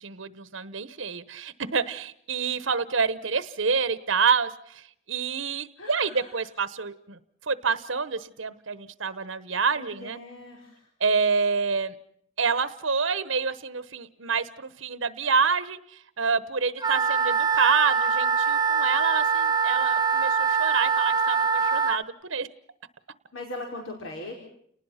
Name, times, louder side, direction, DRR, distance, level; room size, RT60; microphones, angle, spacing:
voice 1, 0.0-10.2 11.0-11.9 12.4-22.5, right 5 dB, 70° right, 15 dB, 1.1 m, -28 dB
voice 2, 5.8-6.4 9.7-10.9 23.3-24.3, left 2 dB, 80° left, 1 dB, 4.9 m, -39 dB
Wind instrument woodwind instrument, 16.8-22.0, right 5 dB, 20° right, 0.9 m, -23 dB
30.0 x 19.5 x 5.8 m, 0.67 s
head